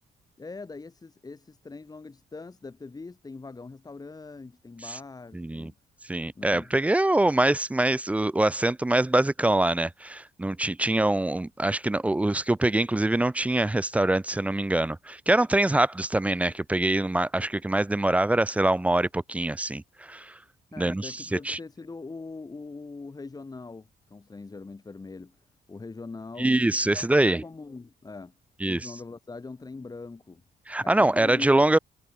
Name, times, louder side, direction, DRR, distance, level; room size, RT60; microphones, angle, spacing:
voice 1, 0.4-5.8 6.4-6.7 20.7-25.4 25.7-28.3 28.6-30.4 30.8-31.5, left 3 dB, 20° left, 4.2 m, -42 dB
voice 2, 5.3-5.7 6.1-20.4 20.8-21.6 26.4-27.4 28.6-28.9 30.7-31.8, right 1 dB, 10° right, 0.4 m, -24 dB
cardioid pair, 125°, 17 cm